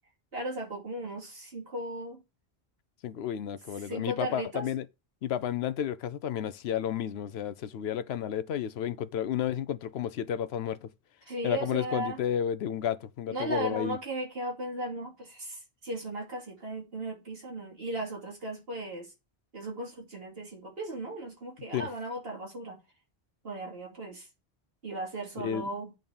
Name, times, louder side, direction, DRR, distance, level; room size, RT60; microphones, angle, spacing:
voice 1, 0.3-2.2 3.8-4.7 11.3-12.2 13.3-19.1 19.5-22.8 23.4-24.3 24.8-25.9, right 1 dB, 70° right, 2.9 m, -36 dB
voice 2, 3.0-4.9 5.2-10.9 11.4-14.0 21.7-21.9 25.4-25.6, left 9 dB, 80° left, 0.9 m, -32 dB
9.1 x 4.1 x 7.0 m
omnidirectional pair, 1.0 m